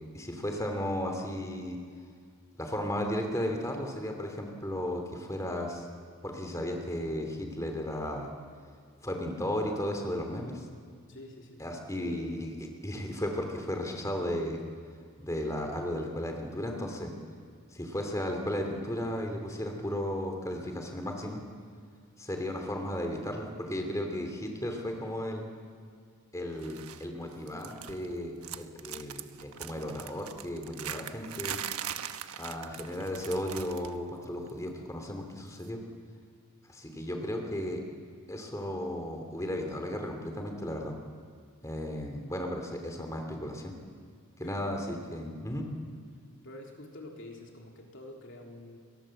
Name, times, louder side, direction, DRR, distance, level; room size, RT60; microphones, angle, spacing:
voice 1, 0.1-1.8 2.6-5.9 6.2-8.3 9.0-10.7 11.6-12.5 12.8-14.6 15.2-17.1 17.7-21.4 22.2-25.5 26.3-31.6 32.4-35.8 36.7-37.8 38.3-41.0 41.6-43.8 44.4-45.7, left 1 dB, 15° left, 3 dB, 2.9 m, -35 dB
voice 2, 11.1-11.7 12.0-12.4 44.4-44.9 46.4-48.8, left 1 dB, 55° left, 0 dB, 3.7 m, -47 dB
sound 1, 26.6-27.1 27.3-28.1 28.4-34.0 34.2-34.5 35.6-35.7, right 9 dB, 85° right, 1.2 m, -41 dB
29.5 x 22.5 x 7.8 m, 2.1 s
head